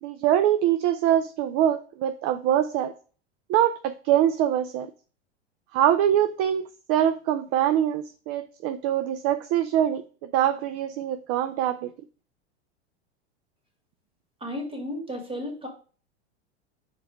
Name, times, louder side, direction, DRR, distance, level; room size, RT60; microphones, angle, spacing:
voice 1, 0.0-2.9 3.5-4.9 5.7-11.9, right 11 dB, 45° right, 0.5 m, -24 dB
voice 2, 14.4-15.7, left 1 dB, 15° right, 2.3 m, -33 dB
4.8 x 4.6 x 5.1 m
hypercardioid pair, 105°, 34 cm